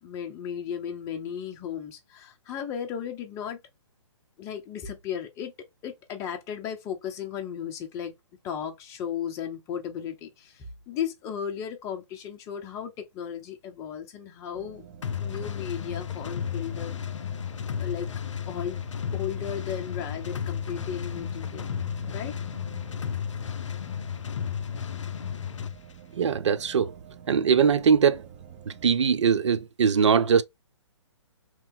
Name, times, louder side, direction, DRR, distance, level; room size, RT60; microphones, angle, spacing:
voice 1, 0.0-3.6 4.4-5.5 5.8-8.1 8.4-14.8 15.2-16.9 17.8-18.1 18.5-18.8 19.1-21.7 22.1-22.4, left 8 dB, 20° left, 0.6 m, -35 dB
sound 1, 14.5-28.9, right 8 dB, 35° right, 0.9 m, -48 dB
sound 2, 15.0-25.8, left 8 dB, 80° left, 0.5 m, -33 dB
voice 2, 26.2-26.9 27.3-28.2 28.7-30.4, right 6 dB, 70° right, 0.5 m, -21 dB
3.0 x 2.7 x 3.5 m
hypercardioid pair, 135°, 16 cm